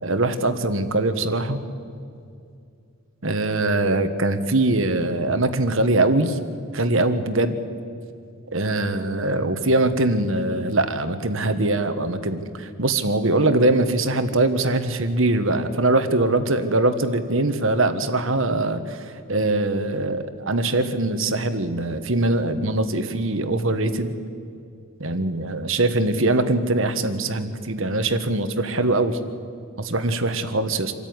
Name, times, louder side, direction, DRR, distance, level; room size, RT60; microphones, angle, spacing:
voice 1, 0.0-1.6 3.2-6.4 6.7-7.5 8.5-19.0 19.3-24.1 25.0-29.2 29.8-30.9, right 2 dB, 65° right, 9 dB, 1.5 m, -22 dB
26.0 x 13.5 x 9.6 m, 2.4 s
head